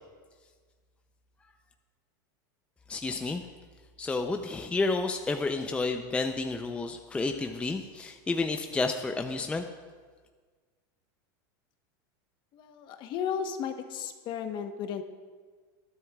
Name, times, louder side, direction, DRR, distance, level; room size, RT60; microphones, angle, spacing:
voice 1, 2.9-3.4 4.0-9.6, left 3 dB, 10° left, 5 dB, 0.5 m, -30 dB
voice 2, 12.5-15.0, left 7 dB, 45° left, 7 dB, 1.1 m, -34 dB
20.0 x 11.0 x 2.4 m, 1.5 s
supercardioid pair, 130°, 11 cm